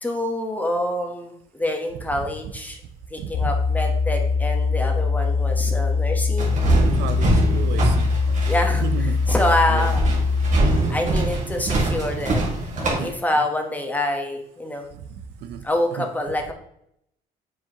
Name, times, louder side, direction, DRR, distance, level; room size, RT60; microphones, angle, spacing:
voice 1, 0.0-2.8 3.1-6.5 8.4-10.1 10.9-14.9 15.6-16.5, left 1 dB, 10° left, 3 dB, 1.1 m, -26 dB
voice 2, 3.2-3.5 6.7-8.1 8.8-9.2 9.7-9.9 12.8-13.1 15.0-15.6 16.0-16.1, right 8 dB, 80° right, 11 dB, 0.6 m, -33 dB
sound 1, 3.3-10.8, left 4 dB, 55° left, 0.4 m, -22 dB
sound 2, 6.4-13.1, right 2 dB, 50° right, 1.9 m, -24 dB
7.2 x 4.9 x 2.9 m, 0.75 s
cardioid pair, 110°, 17 cm